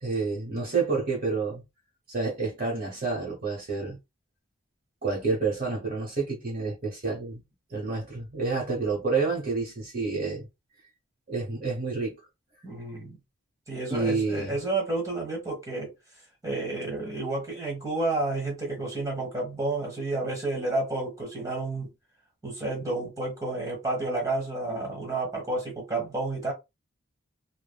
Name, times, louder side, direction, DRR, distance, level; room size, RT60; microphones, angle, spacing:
voice 1, 0.0-1.6 2.1-4.0 5.0-7.4 7.7-10.4 11.3-12.2 13.9-14.6, right 4 dB, 40° right, 0.9 m, -29 dB
voice 2, 12.6-13.2 13.7-15.9 16.4-21.9 22.4-26.5, right 2 dB, 15° right, 1.2 m, -30 dB
3.3 x 2.1 x 2.3 m
head